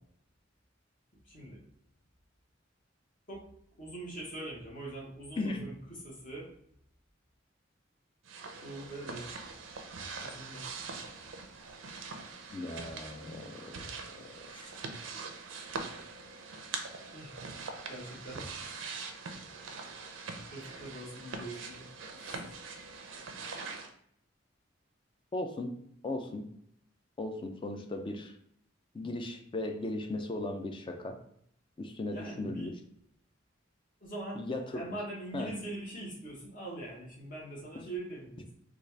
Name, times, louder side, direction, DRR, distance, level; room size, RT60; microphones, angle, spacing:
voice 1, 1.2-1.6 3.3-3.4 3.8-6.5 8.6-9.3 10.2-10.7 17.1-17.6 17.9-18.5 20.5-22.6 32.0-32.7 34.0-38.5, right 1 dB, 45° left, -3 dB, 1.1 m, -43 dB
voice 2, 5.4-5.7 12.5-14.7 25.3-25.7 26.0-26.5 27.2-28.3 28.9-31.2 31.8-32.7 34.4-34.8 35.3-35.5, left 2 dB, 25° left, 5 dB, 0.4 m, -37 dB
sound 1, 8.2-23.9, right 4 dB, 80° right, 0.5 m, -43 dB
3.8 x 2.3 x 3.2 m, 0.69 s
head